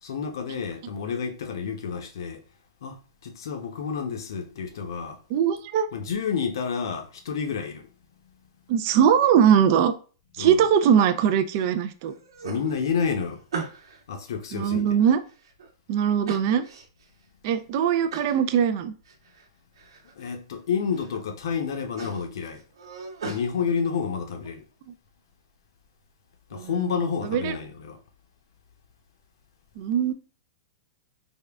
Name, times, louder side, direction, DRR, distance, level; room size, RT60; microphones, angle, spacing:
voice 1, 0.0-2.4 2.8-5.2 5.9-7.9 10.4-10.7 12.4-13.4 14.1-14.9 20.2-22.6 23.2-24.6 26.5-28.0, left 6 dB, 70° left, 0.7 m, -29 dB
voice 2, 5.3-5.9 8.7-9.9 10.4-12.1 14.5-15.2 15.9-16.6 17.4-18.9 26.6-26.9 27.3-27.5 29.8-30.1, right 8 dB, 35° right, 0.3 m, -21 dB
sound 1, 10.9-11.7 12.0-14.0 14.5-15.7 16.2-17.1 17.5-17.6 18.1-18.4 18.8-19.5 19.8-20.3 20.7-21.2 21.5-23.4, right 5 dB, 90° right, 0.9 m, -39 dB
3.6 x 2.2 x 3.4 m
supercardioid pair, 170°, 2 cm